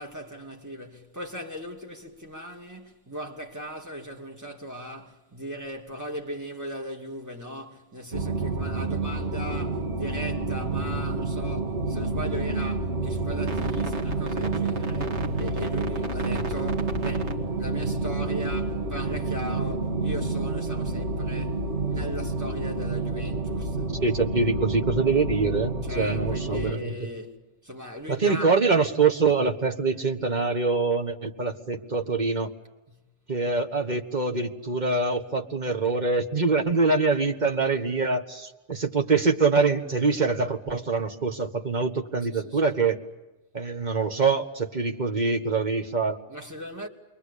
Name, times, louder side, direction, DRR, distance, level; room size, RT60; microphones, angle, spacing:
voice 1, 0.0-24.0 25.8-27.4 27.6-28.5 32.9-33.0 42.2-42.6 46.3-46.9, equal, 15° right, 2.6 m, -38 dB
sound 1, 8.1-26.7, right 3 dB, 70° right, 2.1 m, -29 dB
voice 2, 24.0-26.9 28.1-32.5 33.3-43.0 43.5-46.2, right 4 dB, 40° right, 1.7 m, -24 dB
28.5 x 23.0 x 8.4 m
omnidirectional pair, 1.2 m